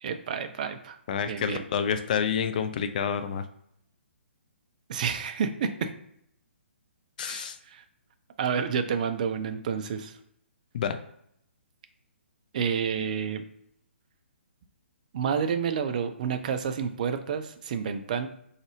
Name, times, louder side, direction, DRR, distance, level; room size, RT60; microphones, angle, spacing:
voice 1, 0.0-1.0 1.3-1.6 4.9-5.9 7.2-7.8 8.4-10.1 12.5-13.4 15.1-18.3, right 7 dB, 40° right, 8 dB, 0.4 m, -29 dB
voice 2, 1.1-3.4 7.2-7.6 10.7-11.0, left 7 dB, 40° left, 9 dB, 0.4 m, -28 dB
3.9 x 2.4 x 3.0 m, 0.71 s
figure-of-eight pair, 130°, 7 cm